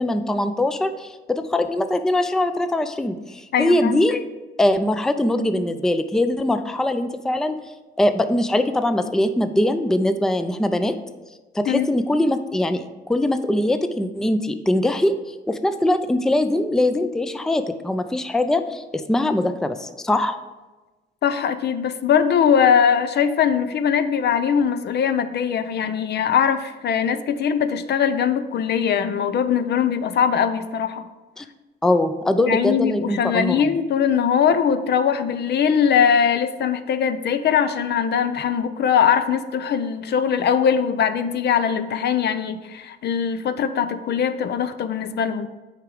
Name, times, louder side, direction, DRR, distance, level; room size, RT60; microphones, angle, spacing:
voice 1, 0.0-4.2 4.6-7.5 8.0-11.0 11.5-15.1 15.5-20.4 31.4-31.5 31.8-33.7, left 1 dB, 5° left, 9 dB, 0.4 m, -22 dB
voice 2, 3.5-4.0 11.7-11.9 21.2-31.0 32.5-45.5, left 7 dB, 55° left, 11 dB, 0.5 m, -21 dB
6.6 x 4.9 x 4.9 m, 1.2 s
cardioid pair, 90°, 20 cm